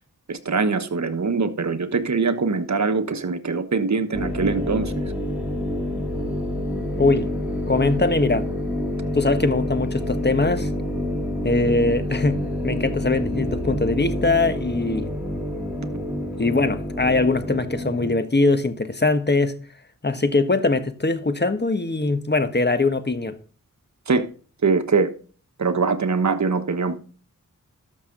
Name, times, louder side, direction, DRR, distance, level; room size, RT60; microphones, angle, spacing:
voice 1, 0.3-4.9 24.1-24.2 24.6-25.1 25.6-27.0, right 4 dB, 55° right, 1.2 m, -22 dB
sound 1, 4.1-18.1, left 1 dB, 5° right, 4.1 m, -28 dB
voice 2, 7.0-7.3 7.7-8.5 9.1-10.7 11.4-12.4 12.6-15.1 16.4-19.5 20.0-23.4, left 3 dB, 30° left, 1.4 m, -21 dB
12.5 x 6.5 x 3.8 m
cardioid pair, 40°, 33 cm